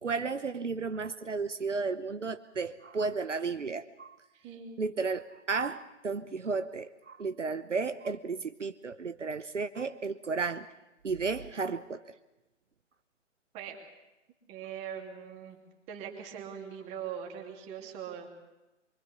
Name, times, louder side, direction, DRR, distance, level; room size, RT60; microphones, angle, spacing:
voice 1, 0.0-4.2 4.8-10.7 11.0-12.2, right 4 dB, 70° right, 11 dB, 1.0 m, -33 dB
voice 2, 4.4-4.8 13.5-13.8 14.5-15.6 15.9-18.3, right 8 dB, 15° right, 2 dB, 2.7 m, -41 dB
25.0 x 23.0 x 6.8 m, 1.0 s
figure-of-eight pair, 135°, 37 cm